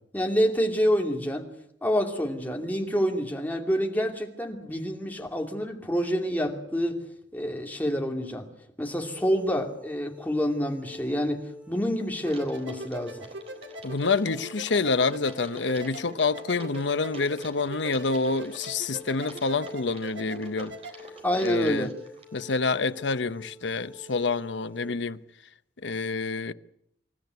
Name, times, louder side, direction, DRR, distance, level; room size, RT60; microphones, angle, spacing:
voice 1, 0.1-1.5 1.8-7.0 7.3-8.4 8.8-11.4 11.7-13.2 21.2-21.9, equal, 10° left, 2.6 m, -27 dB
sound 1, 9.0-24.9, left 4 dB, 5° right, 1.4 m, -48 dB
sound 2, 12.2-21.0, right 1 dB, 80° right, 2.3 m, -42 dB
Typing, 12.3-22.7, right 2 dB, 35° right, 4.1 m, -50 dB
voice 2, 13.8-20.8 21.4-21.9 22.3-25.2 25.8-26.5, left 4 dB, 75° left, 0.8 m, -27 dB
26.5 x 13.5 x 9.4 m
head